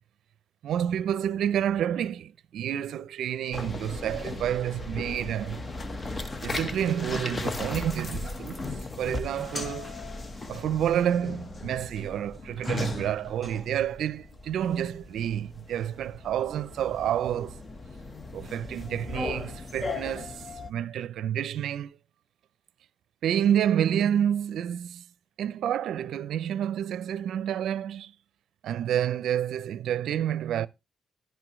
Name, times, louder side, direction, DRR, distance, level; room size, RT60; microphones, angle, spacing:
voice 1, 0.6-5.6 6.4-8.6 9.0-9.9 10.5-17.6 18.3-22.0 23.2-25.0 25.4-28.1 28.6-30.7, right 10 dB, 80° right, 0.5 m, -29 dB
sound 1, 3.5-20.7, left 3 dB, 30° left, 1.1 m, -37 dB
10.5 x 10.5 x 3.1 m
cardioid pair, 85°, 0 cm